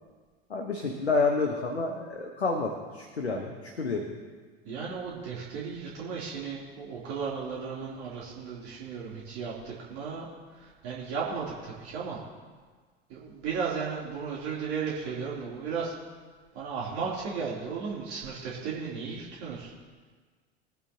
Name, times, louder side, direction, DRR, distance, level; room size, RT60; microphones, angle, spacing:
voice 1, 0.5-4.1, left 3 dB, 80° left, 3 dB, 1.3 m, -29 dB
voice 2, 4.6-10.3 10.5-12.2 13.1-15.9 16.5-19.7, right 5 dB, 45° right, -6 dB, 3.2 m, -35 dB
22.0 x 10.5 x 2.9 m, 1.5 s
figure-of-eight pair, 80°, 33 cm